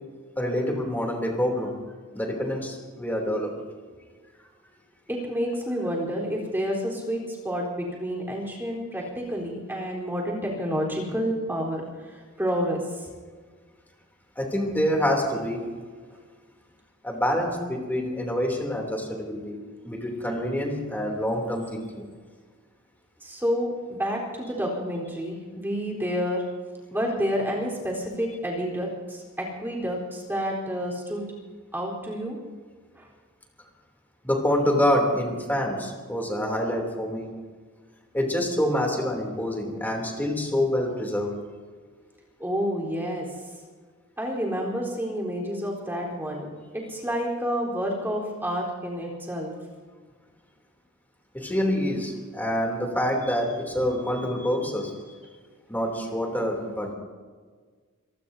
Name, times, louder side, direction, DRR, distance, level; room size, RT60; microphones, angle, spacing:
voice 1, 0.4-1.8 2.1-3.6 14.4-15.7 17.0-22.1 34.2-37.3 38.1-41.4 51.3-54.9 55.7-56.9, equal, 10° left, 1 dB, 3.0 m, -26 dB
voice 2, 5.1-13.1 23.2-26.5 26.9-31.3 31.7-32.4 33.0-33.1 42.4-43.3 44.2-49.5, equal, 10° right, -3 dB, 3.9 m, -29 dB
27.0 x 18.5 x 2.8 m, 1.5 s
head